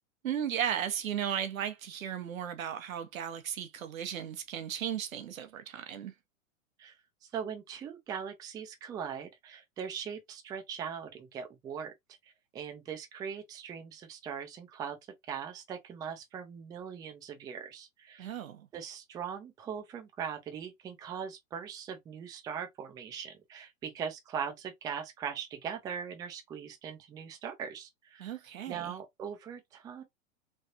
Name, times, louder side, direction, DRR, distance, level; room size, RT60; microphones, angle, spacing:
voice 1, 0.2-6.1 18.2-18.7 28.2-29.0, right 9 dB, 85° right, 0.9 m, -35 dB
voice 2, 7.2-11.9 12.5-15.0 15.3-18.3 18.7-30.0, right 7 dB, 10° right, 0.4 m, -40 dB
3.2 x 2.4 x 2.8 m
hypercardioid pair, 125°, 40 cm